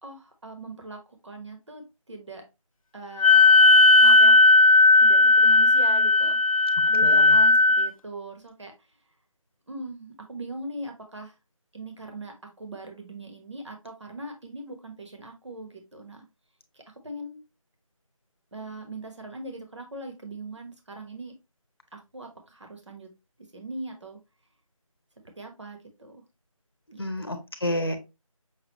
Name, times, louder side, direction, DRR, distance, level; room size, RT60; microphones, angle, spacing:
voice 1, 0.0-2.4 2.9-3.7 4.0-4.4 5.0-8.7 9.7-11.3 11.7-16.2 16.7-17.4 18.5-21.3 21.9-23.1 23.5-24.2 25.4-26.2 26.9-27.1, right 2 dB, 55° right, 4 dB, 1.2 m, -40 dB
Wind instrument woodwind instrument, 3.2-7.9, left 3 dB, 70° left, 0.4 m, -16 dB
voice 2, 7.0-7.4 27.0-28.0, left 1 dB, 45° left, 7 dB, 0.8 m, -30 dB
5.9 x 2.4 x 2.9 m, 0.25 s
figure-of-eight pair, 180°, 18 cm